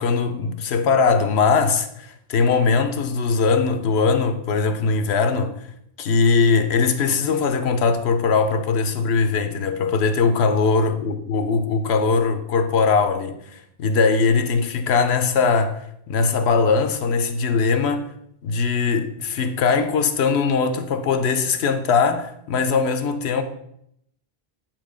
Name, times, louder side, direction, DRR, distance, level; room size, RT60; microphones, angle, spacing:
voice 1, 0.0-5.5 6.0-15.8 16.1-18.1 18.4-23.4, left 5 dB, 75° left, 0.9 m, -20 dB
8.8 x 2.9 x 4.9 m
omnidirectional pair, 1.1 m